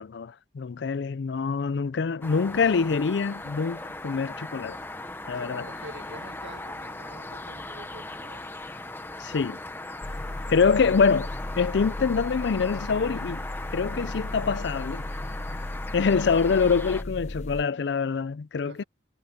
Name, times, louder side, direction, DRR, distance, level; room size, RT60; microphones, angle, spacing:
voice 1, 0.0-4.8 5.3-5.7 9.2-9.6 10.5-11.3 11.6-13.4 13.7-15.0 15.9-18.8, left 5 dB, 75° left, 0.4 m, -25 dB
sound 1, 2.2-17.0, left 2 dB, 10° left, 1.1 m, -38 dB
voice 2, 5.3-8.6 18.6-18.8, right 2 dB, 75° right, 2.1 m, -47 dB
sound 2, 10.0-17.6, left 1 dB, 40° left, 0.9 m, -36 dB
head